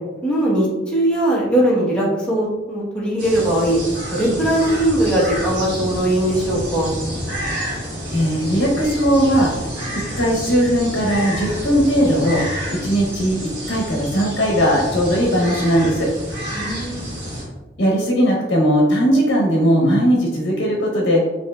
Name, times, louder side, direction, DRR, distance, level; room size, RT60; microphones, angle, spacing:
voice 1, 0.2-3.8 4.1-6.9 16.5-17.1, right 1 dB, 5° left, -7 dB, 0.9 m, -20 dB
sound 1, 3.2-17.4, equal, 80° right, 1.4 m, -29 dB
voice 2, 8.1-9.5 9.9-12.4 12.7-13.4 13.7-16.1 17.8-21.2, equal, 75° left, -2 dB, 0.7 m, -18 dB
5.2 x 2.9 x 2.2 m, 1.2 s
head